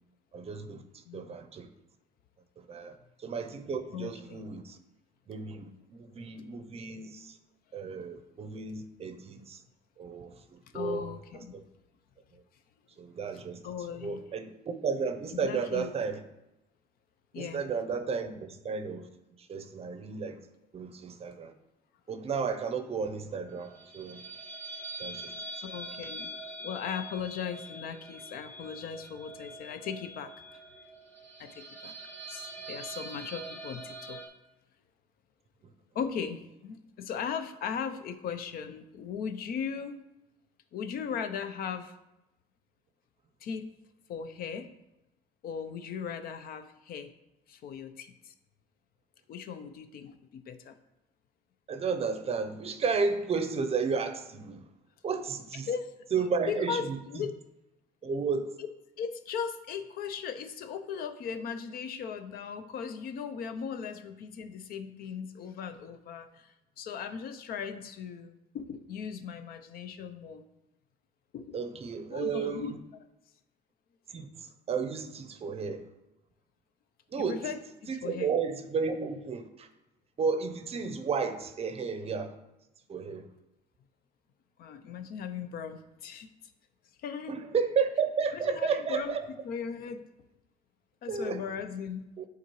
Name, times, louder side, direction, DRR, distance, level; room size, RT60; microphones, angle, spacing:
voice 1, 0.3-1.7 2.6-4.8 5.3-7.4 7.7-9.6 10.0-11.1 11.3-11.6 13.0-13.6 14.0-16.2 17.4-19.1 19.4-20.4 20.7-21.5 22.1-24.2 25.0-25.3 51.7-54.6 55.0-55.7 56.1-57.0 58.0-58.6 71.5-72.8 74.1-75.9 77.1-77.6 77.9-79.7 80.2-82.3 82.9-83.3 87.3-89.2 91.1-91.4 92.2-92.3, right 5 dB, 35° right, 9 dB, 0.6 m, -33 dB
voice 2, 3.9-4.5 10.7-11.5 13.6-14.2 15.4-15.9 17.3-17.6 25.6-26.3 26.6-30.6 31.4-31.9 32.3-34.2 35.9-40.0 40.7-41.9 43.4-43.7 44.1-44.7 45.4-47.1 47.5-48.3 49.3-50.7 55.6-55.9 56.5-57.4 59.0-70.5 71.3-71.6 72.1-72.8 77.2-78.3 84.6-86.3 87.0-87.4 88.4-89.1 89.4-90.0 91.0-92.0, left 7 dB, 60° left, 10 dB, 0.5 m, -38 dB
sound 1, 23.5-34.3, right 1 dB, 10° left, 1.2 m, -44 dB
8.2 x 3.9 x 3.0 m, 0.92 s
cardioid pair, 110°, 17 cm